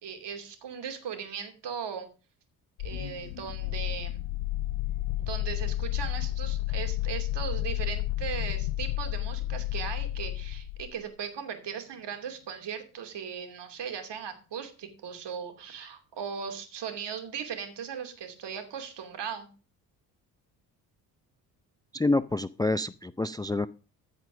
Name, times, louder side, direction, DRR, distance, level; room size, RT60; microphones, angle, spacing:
voice 1, 0.0-2.1 2.8-4.2 5.2-19.5, right 7 dB, 60° right, 7 dB, 2.8 m, -38 dB
sound 1, 2.8-11.0, left 14 dB, 75° left, 0.8 m, -31 dB
voice 2, 21.9-23.7, left 2 dB, 10° left, 15 dB, 0.5 m, -27 dB
14.5 x 5.1 x 6.2 m, 0.34 s
hypercardioid pair, 50°, 48 cm